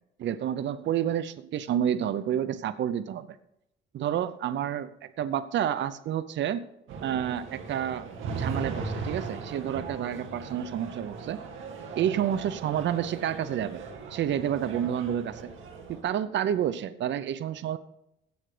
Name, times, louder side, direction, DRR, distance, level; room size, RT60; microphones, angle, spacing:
voice 1, 0.2-3.4 3.9-6.6 7.0-8.1 8.3-11.4 12.0-13.8 14.1-15.5 15.9-17.8, right 10 dB, 65° right, 14 dB, 0.7 m, -29 dB
sound 1, 6.9-16.0, right 4 dB, 85° right, 2.2 m, -38 dB
16.5 x 6.5 x 4.9 m, 0.82 s
cardioid pair, 90°, 20 cm